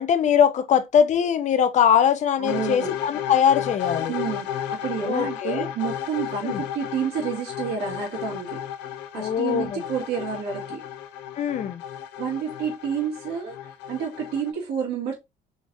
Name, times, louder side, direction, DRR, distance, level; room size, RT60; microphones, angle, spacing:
voice 1, 0.0-4.1 5.1-5.7 6.4-6.6 9.1-9.8 11.4-11.8, left 8 dB, 45° left, 0.6 m, -21 dB
voice 2, 2.4-2.9 4.1-4.5 4.7-8.6 9.1-10.8 12.2-13.6 13.9-15.1, right 7 dB, 80° right, 1.6 m, -29 dB
sound 1, 2.5-14.5, left 10 dB, 90° left, 0.6 m, -33 dB
3.8 x 3.3 x 2.6 m
cardioid pair, 110°, 17 cm